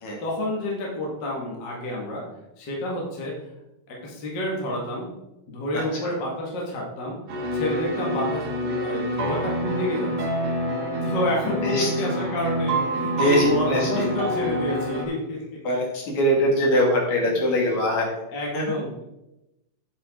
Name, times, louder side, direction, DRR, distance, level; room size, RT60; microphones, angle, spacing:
voice 1, 0.2-2.2 2.6-3.4 3.9-5.1 5.5-7.2 7.5-10.1 11.0-15.4 17.2-17.4 18.3-19.0, left 1 dB, 35° left, -3 dB, 2.1 m, -29 dB
voice 2, 5.7-6.1 11.6-12.1 13.2-14.1 15.6-18.2 18.5-18.8, equal, 55° left, -2 dB, 3.6 m, -23 dB
sound 1, 7.3-15.0, right 1 dB, 60° right, 2.7 m, -27 dB
9.2 x 8.6 x 3.8 m, 0.92 s
omnidirectional pair, 3.9 m